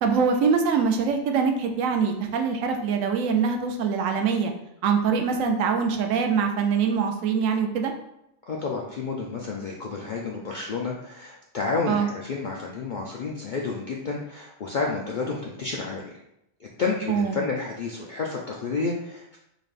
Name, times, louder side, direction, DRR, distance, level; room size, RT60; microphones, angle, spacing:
voice 1, 0.0-4.5 4.8-7.9 11.9-12.1 17.1-17.4, right 6 dB, 90° right, 4 dB, 1.0 m, -23 dB
voice 2, 8.4-16.2 16.6-19.4, left 4 dB, 70° left, -2 dB, 0.4 m, -30 dB
4.0 x 3.3 x 2.4 m, 0.81 s
omnidirectional pair, 1.3 m